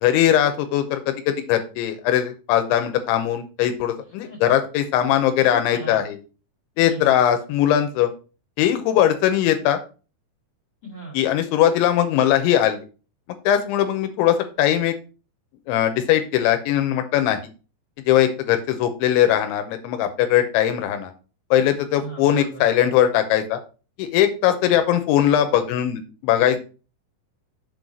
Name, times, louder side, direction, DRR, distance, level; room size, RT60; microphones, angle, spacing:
voice 1, 0.0-6.2 6.8-8.1 8.6-9.8 11.1-12.8 13.5-14.9 15.7-17.4 18.1-21.1 21.5-23.6 24.0-26.6, left 11 dB, 90° left, 8 dB, 3.1 m, -20 dB
voice 2, 5.4-6.0 6.8-7.1 10.8-11.2 22.0-22.5, right 2 dB, 40° left, -2 dB, 1.9 m, -36 dB
7.0 x 4.0 x 6.1 m, 0.34 s
omnidirectional pair, 5.5 m